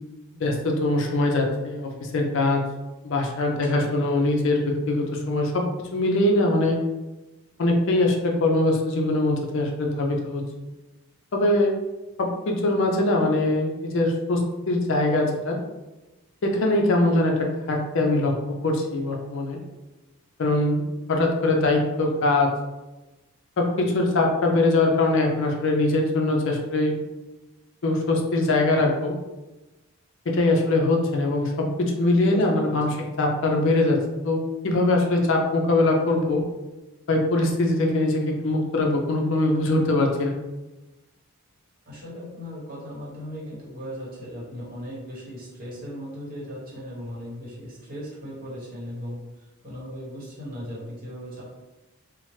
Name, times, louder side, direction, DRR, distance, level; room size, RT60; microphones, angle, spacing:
voice 1, 0.4-2.6 3.0-5.6 5.9-6.8 7.6-10.4 11.3-11.7 12.2-15.6 16.4-18.3 18.6-19.6 20.4-20.8 21.1-22.5 23.6-27.0 27.8-29.1 30.3-34.0 34.2-36.4 37.1-40.4, left 2 dB, 55° left, 1 dB, 0.4 m, -22 dB
voice 2, 32.3-33.0 41.9-49.2 49.6-51.4, equal, 40° right, -6 dB, 0.9 m, -37 dB
2.9 x 2.0 x 3.1 m, 1.1 s
head